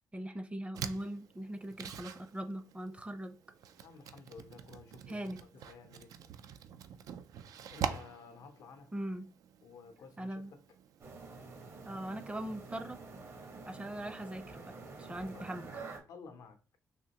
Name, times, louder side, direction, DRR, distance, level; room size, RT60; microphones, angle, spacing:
voice 1, 0.1-3.4 5.1-5.4 8.9-9.3 10.2-10.5 11.8-13.0 13.7-15.7, right 1 dB, 20° right, 0.6 m, -41 dB
sound 1, 0.7-14.4, right 8 dB, 80° right, 0.3 m, -46 dB
voice 2, 3.8-5.3 5.5-6.1 7.7-8.9 9.6-10.6 13.9-14.0 15.3-15.5 16.1-16.6, left 5 dB, 80° left, 0.6 m, -53 dB
sound 2, 11.0-16.0, right 3 dB, 55° right, 1.0 m, -48 dB
3.6 x 2.8 x 2.8 m
cardioid pair, 70°, 6 cm